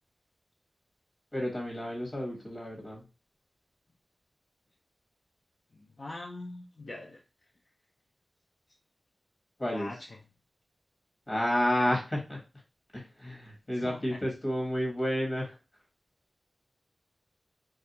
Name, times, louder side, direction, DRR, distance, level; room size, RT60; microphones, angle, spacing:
voice 1, 1.3-3.0 9.6-9.9 11.3-12.4 12.9-15.5, left 1 dB, 40° left, -1 dB, 1.1 m, -31 dB
voice 2, 5.7-7.2 9.7-10.2 13.7-14.2, left 2 dB, 55° left, -1 dB, 0.4 m, -43 dB
2.4 x 2.1 x 2.8 m, 0.30 s
cardioid pair, 40°, 0 cm